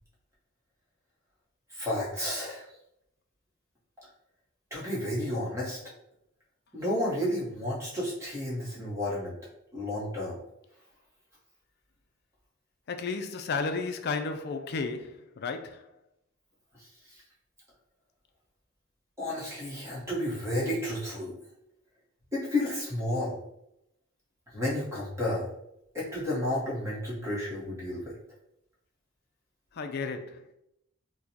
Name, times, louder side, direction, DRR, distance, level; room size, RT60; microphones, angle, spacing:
voice 1, 1.7-2.6 4.7-5.8 6.7-9.3 9.7-10.4 19.2-21.3 22.3-23.4 24.5-25.5 25.9-28.1, left 1 dB, 15° right, 1.1 m, -31 dB
voice 2, 12.9-15.9 29.7-30.4, left 4 dB, 50° left, 0.4 m, -33 dB
4.7 x 2.2 x 2.8 m
head